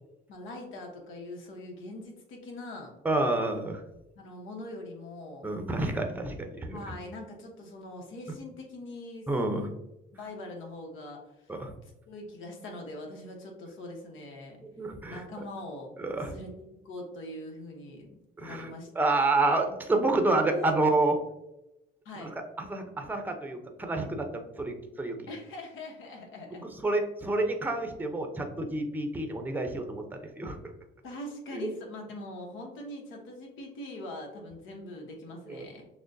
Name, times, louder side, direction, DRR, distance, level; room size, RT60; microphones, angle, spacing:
voice 1, 0.3-2.9 4.1-5.5 6.7-9.2 9.5-9.7 10.1-11.5 11.8-14.6 15.1-15.9 16.3-19.2 20.5-20.7 22.0-22.3 25.3-26.7 31.0-35.8, left 1 dB, 80° left, 1 dB, 1.0 m, -42 dB
voice 2, 3.0-3.8 5.4-6.8 9.3-9.6 11.5-11.7 14.8-15.2 16.0-16.3 18.4-18.7 19.0-21.2 22.2-22.3 22.7-25.3 26.8-30.6 31.5-31.7 35.5-35.6, right 2 dB, 10° right, 4 dB, 0.6 m, -29 dB
6.1 x 2.2 x 2.6 m, 0.89 s
cardioid pair, 90°, 20 cm